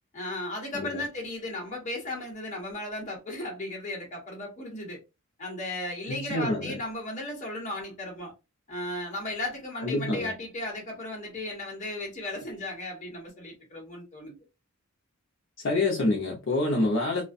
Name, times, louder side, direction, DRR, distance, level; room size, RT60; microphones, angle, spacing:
voice 1, 0.1-5.0 5.4-8.3 8.7-14.4, left 1 dB, 35° left, 0.9 m, -35 dB
voice 2, 6.1-6.8 9.8-10.3 15.6-17.2, left 2 dB, 60° left, 0.5 m, -27 dB
2.4 x 2.1 x 2.5 m
head